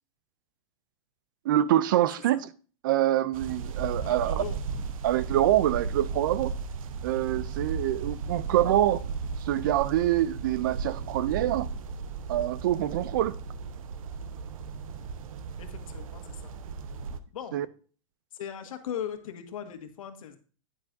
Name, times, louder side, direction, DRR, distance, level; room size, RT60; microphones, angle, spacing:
voice 1, 1.5-2.5 2.8-4.4 5.0-6.5 7.0-9.0 9.4-11.7 12.3-13.4 17.5-17.7, right 13 dB, 40° right, 0.4 m, -25 dB
sound 1, 3.3-17.2, right 5 dB, 75° right, 0.9 m, -35 dB
voice 2, 4.0-4.6 6.1-6.2 8.3-8.5 15.6-16.5 17.3-17.7 18.3-20.4, left 9 dB, 75° left, 1.7 m, -39 dB
10.0 x 9.6 x 2.6 m
supercardioid pair, 175°, 18 cm